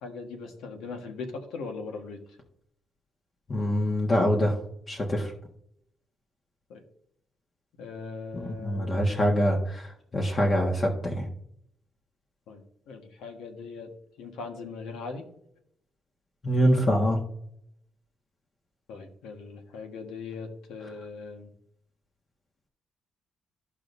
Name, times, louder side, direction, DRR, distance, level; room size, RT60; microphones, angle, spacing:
voice 1, 0.0-2.2 6.7-6.8 7.8-9.1 12.5-13.9 14.2-15.2 18.9-21.5, left 4 dB, 90° left, 4 dB, 1.5 m, -39 dB
voice 2, 3.5-4.6 4.9-5.3 8.3-11.3 16.4-17.2 20.8-20.9, equal, 40° left, 0 dB, 1.5 m, -25 dB
14.0 x 5.0 x 2.6 m, 0.72 s
cardioid pair, 90°, 0 cm